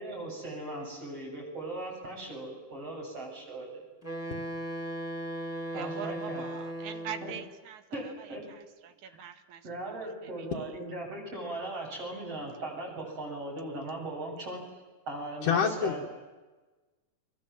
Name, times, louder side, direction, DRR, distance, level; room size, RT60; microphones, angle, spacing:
voice 1, 0.0-3.8 5.7-6.5 7.2-7.3 7.9-8.4 9.0-9.2 9.6-16.1, right 2 dB, 45° right, -1 dB, 8.5 m, -39 dB
Wind instrument woodwind instrument, 4.0-7.5, right 1 dB, 5° left, 3.4 m, -37 dB
voice 2, 5.7-10.7, right 9 dB, 70° right, 10 dB, 2.8 m, -43 dB
voice 3, 15.4-16.1, left 7 dB, 80° left, -1 dB, 3.3 m, -26 dB
30.0 x 23.5 x 7.6 m, 1.2 s
omnidirectional pair, 3.6 m